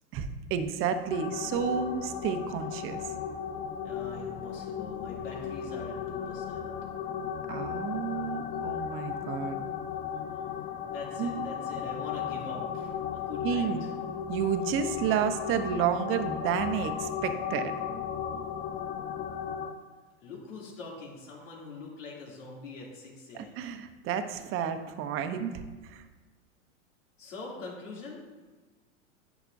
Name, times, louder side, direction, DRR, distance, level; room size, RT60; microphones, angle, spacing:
voice 1, 0.1-3.0 7.5-9.6 11.2-11.3 13.4-13.8 14.3-17.7 23.3-25.5 25.8-26.0, right 8 dB, 35° right, 9 dB, 0.8 m, -31 dB
sound 1, 1.1-19.7, left 8 dB, 20° left, 0.4 m, -35 dB
voice 2, 3.8-6.7 10.9-13.9 20.2-23.6 27.2-28.2, left 3 dB, 80° left, -3 dB, 2.7 m, -43 dB
11.0 x 7.9 x 2.6 m, 1.3 s
hypercardioid pair, 120°, 38 cm